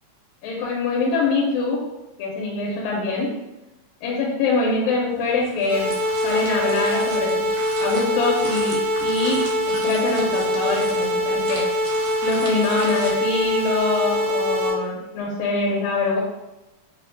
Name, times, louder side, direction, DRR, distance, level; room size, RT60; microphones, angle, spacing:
voice 1, 0.4-1.8 2.2-3.3 4.0-5.9 6.2-11.7 12.2-16.2, left 3 dB, 90° left, -3 dB, 2.0 m, -24 dB
sound 1, 5.1-13.1, right 2 dB, 75° right, 1.9 m, -38 dB
sound 2, 5.7-14.7, left 1 dB, 40° right, 0.9 m, -23 dB
4.5 x 2.1 x 2.6 m, 1.0 s
omnidirectional pair, 3.3 m